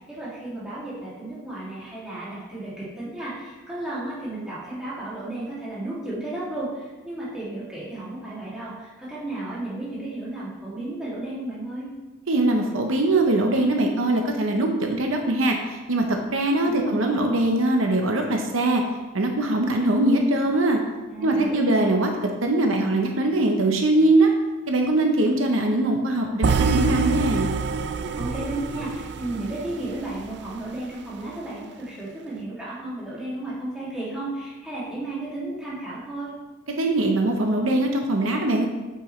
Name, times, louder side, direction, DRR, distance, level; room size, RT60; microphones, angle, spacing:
voice 1, 0.0-11.9 16.7-17.2 21.1-21.9 28.2-36.3, right 2 dB, 5° right, -10 dB, 2.5 m, -33 dB
voice 2, 12.3-18.8 19.1-20.8 21.2-22.1 22.4-24.3 24.7-27.5 36.8-38.7, right 2 dB, 80° right, 2 dB, 0.9 m, -22 dB
sound 1, 26.4-30.5, right 5 dB, 55° right, 0.4 m, -26 dB
8.8 x 5.5 x 3.2 m, 1.2 s
head